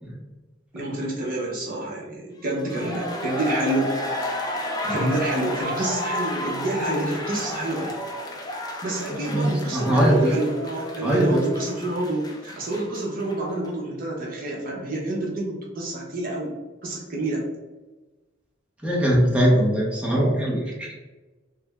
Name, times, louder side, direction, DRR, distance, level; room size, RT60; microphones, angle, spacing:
voice 1, 0.7-4.0 4.9-7.9 8.8-17.5, right 1 dB, 50° right, -2 dB, 0.7 m, -28 dB
sound 1, 2.5-13.4 13.6-13.7, left 1 dB, 20° left, 0.4 m, -32 dB
voice 2, 9.1-10.3 11.0-11.4 18.8-20.9, equal, 5° right, -5 dB, 0.8 m, -21 dB
3.3 x 2.1 x 3.4 m, 1.2 s
head